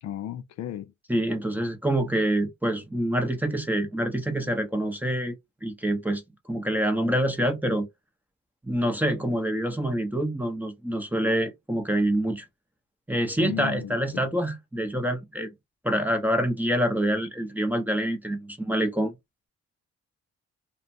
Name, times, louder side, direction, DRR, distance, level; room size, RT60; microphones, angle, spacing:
voice 1, 0.0-0.9 13.4-14.3, left 11 dB, 65° left, 0.5 m, -35 dB
voice 2, 1.1-6.2 6.5-7.9 8.6-12.4 13.1-15.5 15.8-19.1, right 1 dB, 5° right, 0.6 m, -26 dB
2.5 x 2.1 x 2.6 m
cardioid pair, 90°, 30 cm